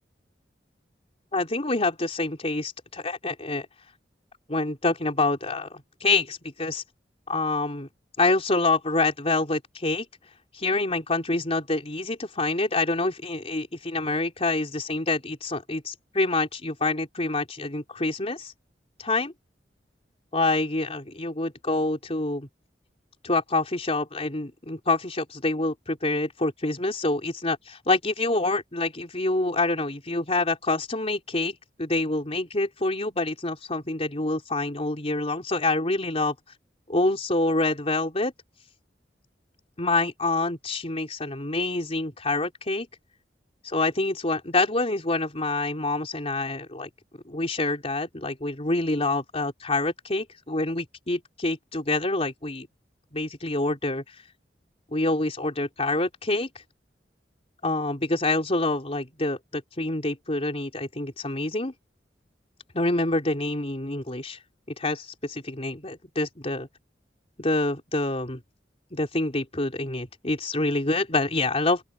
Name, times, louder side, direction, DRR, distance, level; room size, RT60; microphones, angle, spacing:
voice 1, 1.3-3.7 4.5-6.8 7.3-7.9 8.2-10.1 10.5-18.5 19.0-19.3 20.3-22.5 23.2-36.4 36.9-38.3 39.8-42.9 43.6-46.9 47.3-52.7 53.1-54.0 54.9-56.5 57.6-61.7 62.7-64.4 64.8-66.7 67.4-68.4 68.9-71.8, left 2 dB, 35° left, 3.6 m, -26 dB
open air
head